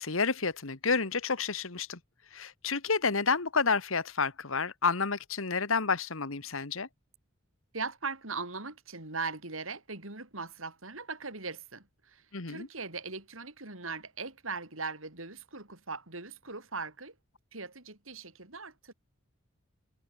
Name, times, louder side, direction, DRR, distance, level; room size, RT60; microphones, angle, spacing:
voice 1, 0.0-2.0 2.3-6.9 12.3-12.7, left 4 dB, 75° left, 1.7 m, -30 dB
voice 2, 7.7-17.1 17.5-18.9, right 4 dB, 75° right, 6.6 m, -40 dB
head